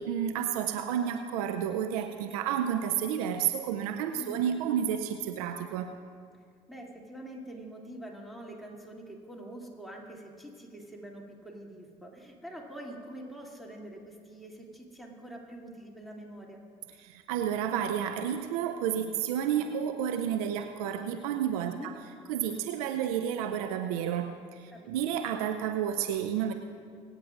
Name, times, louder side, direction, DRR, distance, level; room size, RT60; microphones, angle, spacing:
voice 1, 0.0-5.9 17.0-21.9 22.3-26.5, right 9 dB, 80° right, 7 dB, 0.6 m, -31 dB
voice 2, 6.7-16.6 21.6-21.9 24.7-24.8, right 1 dB, ahead, -2 dB, 2.7 m, -45 dB
25.5 x 9.2 x 2.5 m, 2.2 s
hypercardioid pair, 55°, 19 cm